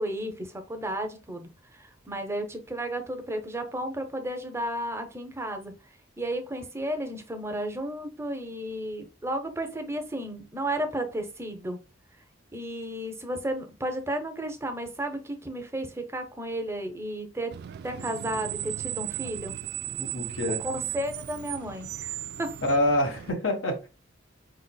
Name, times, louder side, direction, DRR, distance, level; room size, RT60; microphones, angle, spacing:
voice 1, 0.0-5.7 6.2-11.8 12.5-17.5 17.8-19.6 20.6-22.5, right 1 dB, 15° right, 0.6 m, -33 dB
Screech, 17.5-23.3, right 12 dB, 55° right, 0.3 m, -36 dB
voice 2, 19.9-20.6 22.6-23.9, left 1 dB, 85° left, 1.5 m, -26 dB
5.0 x 3.9 x 2.2 m
head